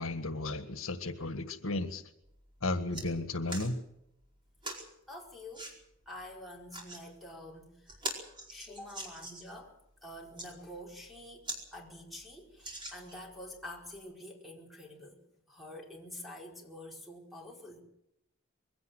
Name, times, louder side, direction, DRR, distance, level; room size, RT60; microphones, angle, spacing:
voice 1, 0.0-2.0 2.6-3.7, left 2 dB, 75° left, 9 dB, 1.7 m, -34 dB
sound 1, 2.2-2.4 2.7-3.1 3.5-3.7 4.6-4.9 5.5-5.7 6.5-7.0 7.5-7.6 7.9-9.6 10.2-10.5 11.0-11.1 11.4-11.6 12.0-12.1 12.6-13.3 14.0-14.1, right 1 dB, 20° right, 4.8 m, -41 dB
voice 2, 5.1-5.7 6.1-8.0 8.5-15.2 15.5-17.8, left 1 dB, ahead, -1 dB, 4.7 m, -47 dB
22.5 x 16.5 x 7.8 m, 0.80 s
head